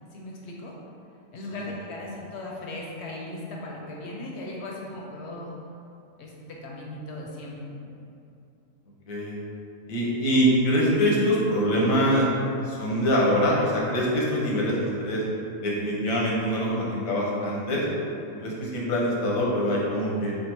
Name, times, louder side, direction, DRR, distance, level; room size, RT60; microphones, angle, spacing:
voice 1, 0.1-0.8 1.3-5.5 6.2-7.9, left 1 dB, 65° left, -2 dB, 0.8 m, -38 dB
voice 2, 9.1-9.4 9.9-12.3 12.6-15.2 15.6-17.8 18.4-20.3, equal, 90° left, -4 dB, 1.2 m, -24 dB
3.5 x 2.4 x 4.3 m, 2.7 s
omnidirectional pair, 1.4 m